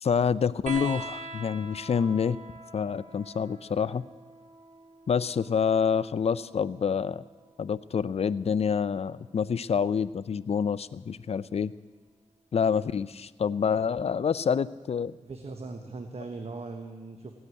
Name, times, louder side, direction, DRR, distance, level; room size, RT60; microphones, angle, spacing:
voice 1, 0.0-2.4 2.7-4.0 5.1-7.2 7.6-11.7 12.5-15.1, left 6 dB, 55° left, 16 dB, 0.5 m, -27 dB
sound 1, 0.7-7.7 9.1-9.9 11.2-11.3, right 3 dB, 75° right, 1.4 m, -44 dB
voice 2, 15.2-17.4, right 3 dB, 55° right, 5 dB, 1.1 m, -39 dB
16.0 x 8.0 x 9.6 m, 1.4 s
cardioid pair, 70°, 13 cm